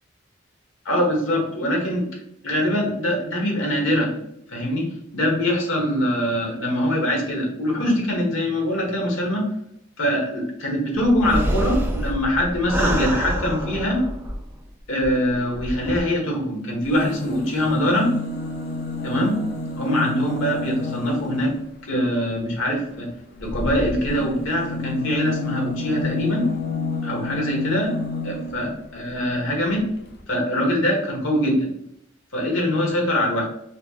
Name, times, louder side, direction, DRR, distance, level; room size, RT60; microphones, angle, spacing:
voice 1, 0.8-2.0 2.4-4.1 4.5-9.5 10.0-14.0 14.9-18.1 19.0-19.4 19.8-21.5 21.9-23.1 23.4-26.4 27.0-27.9 28.2-29.9 30.3-31.7 32.3-33.4, equal, 90° left, -1 dB, 1.3 m, -23 dB
sound 1, 11.0-14.6 15.0-15.1 15.5-16.0, equal, 10° right, 0.4 m, -26 dB
sound 2, 16.8-21.7 23.4-28.8 29.8-29.9 30.1-30.2, left 3 dB, 55° left, 0.5 m, -30 dB
4.1 x 3.1 x 2.3 m, 0.76 s
head